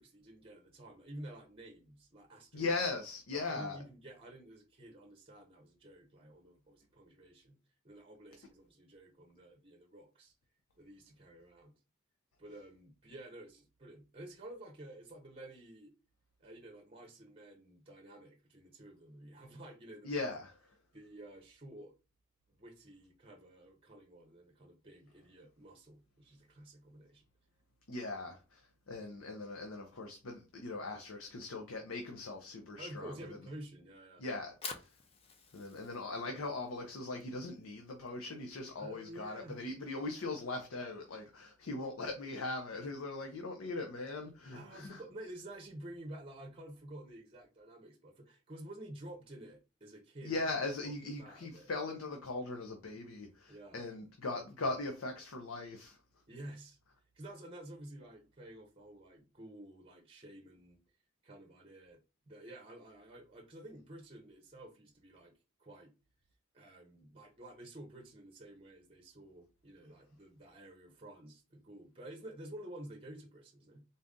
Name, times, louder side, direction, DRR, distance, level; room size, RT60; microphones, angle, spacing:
voice 1, 0.0-2.7 3.3-7.6 7.8-10.3 10.8-11.7 12.4-15.9 16.4-20.3 20.9-21.9 22.6-27.2 28.1-28.2 32.8-34.2 38.8-39.6 44.5-50.4 50.8-51.7 53.5-53.8 56.3-56.8 57.1-60.8 61.2-62.0 62.3-65.3 65.6-65.9 66.5-73.8, right 1 dB, 25° right, 0.7 m, -51 dB
voice 2, 2.5-3.8 20.0-20.5 27.9-33.1 34.2-34.9 35.5-45.0 50.2-56.0, left 3 dB, 90° left, 0.7 m, -40 dB
Fire, 34.3-40.5, left 5 dB, 30° left, 0.5 m, -51 dB
4.0 x 2.6 x 3.6 m
head